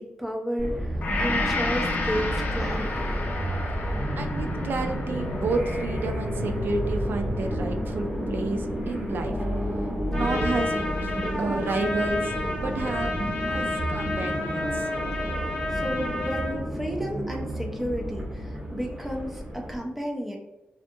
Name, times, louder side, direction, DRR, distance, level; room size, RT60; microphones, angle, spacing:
voice 1, 0.0-3.1 15.7-20.4, equal, 5° right, 0 dB, 0.5 m, -32 dB
sound 1, 0.6-19.8, equal, 25° right, 1.2 m, -30 dB
Gong, 1.0-9.3 9.8-9.9, left 3 dB, 60° left, 0.4 m, -34 dB
voice 2, 4.2-9.4 10.1-13.1 13.5-14.9, right 3 dB, 75° right, 5 dB, 0.3 m, -31 dB
Trumpet, 10.1-16.6, left 2 dB, 30° left, 1.2 m, -31 dB
2.6 x 2.4 x 2.6 m, 1.0 s
wide cardioid pair, 150°, 3 cm